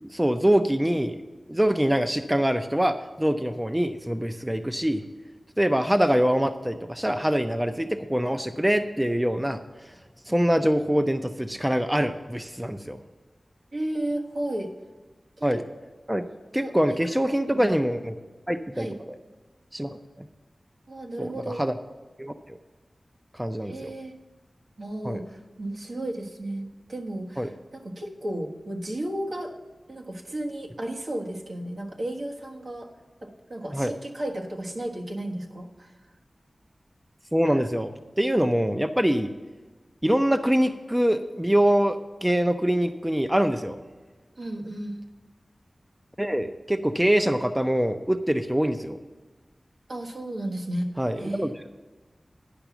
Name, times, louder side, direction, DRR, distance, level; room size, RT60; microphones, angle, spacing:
voice 1, 0.0-1.2 1.5-5.0 5.6-9.6 10.3-13.0 15.4-15.6 16.1-16.3 16.5-18.2 18.5-18.9 19.7-19.9 20.2-20.3 21.2-21.7 22.2-22.6 23.3-23.9 25.0-25.2 27.4-27.5 33.7-33.9 37.3-37.9 38.2-39.3 40.0-43.8 46.2-49.0 51.0-51.5, equal, 10° right, 8 dB, 0.5 m, -24 dB
voice 2, 13.7-14.7 15.4-15.6 16.5-17.0 17.5-17.6 18.7-18.9 20.9-21.6 23.6-24.2 24.8-29.5 29.9-32.9 33.2-35.9 44.4-45.0 49.9-51.5, right 1 dB, 65° right, -1 dB, 1.4 m, -33 dB
10.0 x 5.9 x 7.0 m, 1.3 s
wide cardioid pair, 75°, 0 cm